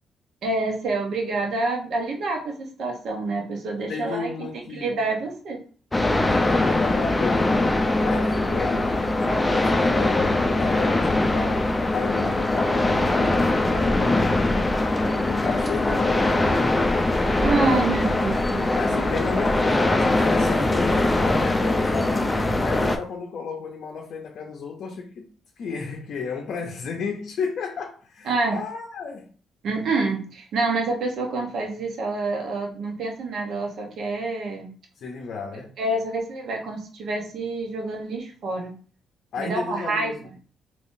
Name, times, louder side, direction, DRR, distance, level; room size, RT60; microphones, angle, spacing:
voice 1, 0.4-5.6 17.4-18.6 28.3-28.6 29.6-34.7 35.8-38.8 39.4-40.1, right 3 dB, 70° right, 0.9 m, -27 dB
voice 2, 3.9-5.0 6.3-7.6 8.0-9.0 9.4-14.4 15.3-16.8 18.0-18.2 18.8-22.3 22.6-25.3 25.6-29.3 35.0-35.8 39.3-40.4, left 5 dB, 65° left, 0.5 m, -33 dB
sound 1, 5.9-23.0, left 2 dB, 15° left, 0.4 m, -22 dB
3.6 x 2.8 x 2.6 m
cardioid pair, 90°, 0 cm